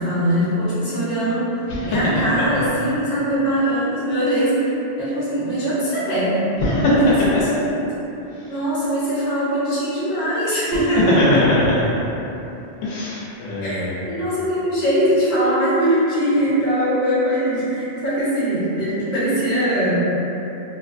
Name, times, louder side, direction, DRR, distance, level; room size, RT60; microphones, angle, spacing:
voice 1, 0.0-6.4 6.9-7.7 8.5-11.2 13.6-20.0, right 1 dB, 40° left, -10 dB, 0.9 m, -21 dB
voice 2, 6.6-7.0 8.3-8.5 10.7-12.0 12.8-14.0, left 2 dB, 85° left, -7 dB, 0.9 m, -21 dB
2.8 x 2.1 x 2.5 m, 3.0 s
omnidirectional pair, 1.2 m